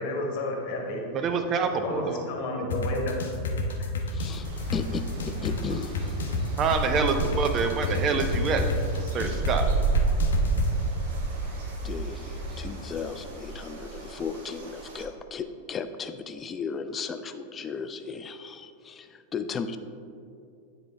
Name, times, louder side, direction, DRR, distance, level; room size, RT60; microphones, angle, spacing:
voice 1, 0.0-1.0 1.8-3.1 3.8-3.9, left 2 dB, 45° left, 1 dB, 1.1 m, -31 dB
voice 2, 1.1-2.2 6.6-8.6 9.1-9.7, right 5 dB, 30° right, 7 dB, 0.6 m, -26 dB
sound 1, 2.7-10.7, left 3 dB, 65° left, 0.7 m, -29 dB
voice 3, 4.1-4.5 4.7-6.2 11.8-19.8, left 5 dB, 20° left, 9 dB, 0.4 m, -35 dB
sound 2, 4.3-12.7, right 1 dB, 15° right, 1.3 m, -38 dB
sound 3, 4.4-15.0, right 4 dB, 55° right, 1.0 m, -32 dB
9.7 x 3.8 x 3.3 m, 2.5 s
figure-of-eight pair, 90°, 0 cm